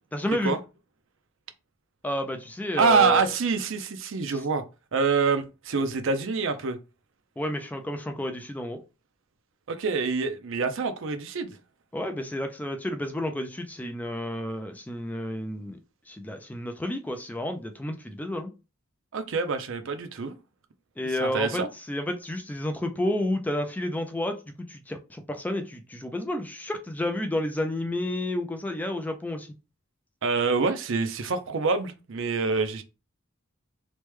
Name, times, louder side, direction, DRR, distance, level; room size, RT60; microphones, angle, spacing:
voice 1, 0.1-0.5 2.0-3.3 4.3-4.4 7.4-8.8 11.9-15.8 16.1-18.5 21.0-29.5, left 1 dB, 10° left, 0.3 m, -31 dB
voice 2, 2.8-4.6 4.9-6.8 9.7-11.5 19.1-20.3 21.2-21.7 30.2-32.8, right 4 dB, 65° right, 0.5 m, -26 dB
3.1 x 2.1 x 3.2 m
head